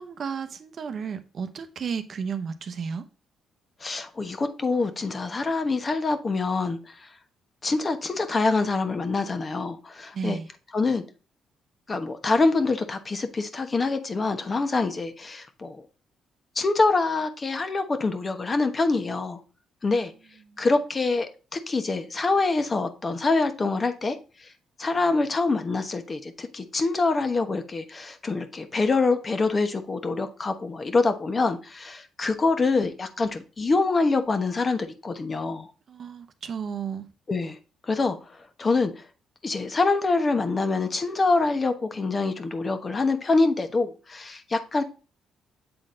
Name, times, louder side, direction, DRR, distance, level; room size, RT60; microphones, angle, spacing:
voice 1, 0.0-3.0 10.1-10.5 20.5-20.7 35.9-37.1, right 6 dB, 55° right, 0.8 m, -33 dB
voice 2, 3.8-6.9 7.6-10.4 10.7-11.0 11.9-15.8 16.6-19.4 19.8-20.1 20.6-24.2 24.8-35.7 37.3-37.6 37.9-38.2 38.6-38.9 39.4-44.8, left 3 dB, 30° left, 1.1 m, -25 dB
7.8 x 3.9 x 3.8 m
cardioid pair, 90°, 0 cm